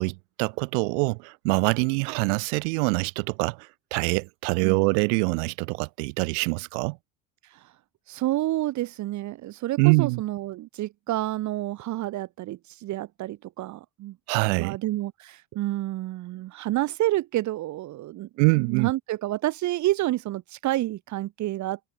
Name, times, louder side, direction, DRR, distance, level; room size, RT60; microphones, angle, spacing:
voice 1, 0.0-7.0 9.8-10.2 14.3-14.8 18.4-18.9, right 35 dB, 75° right, 1.2 m, -24 dB
voice 2, 4.6-4.9 7.4-7.7 8.1-14.2 14.6-18.3 18.5-21.8, right 16 dB, 50° right, 1.5 m, -29 dB
supercardioid pair, 100°, 36 cm